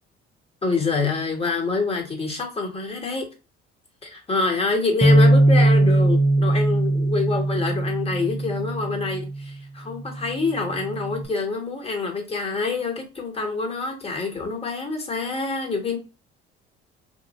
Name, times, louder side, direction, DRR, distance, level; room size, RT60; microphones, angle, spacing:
voice 1, 0.6-3.3 4.0-16.0, left 4 dB, 20° left, 1.4 m, -26 dB
Bass guitar, 5.0-9.4 10.1-11.2, right 1 dB, 10° right, 0.8 m, -20 dB
2.7 x 2.5 x 3.1 m
hypercardioid pair, 60°, 29 cm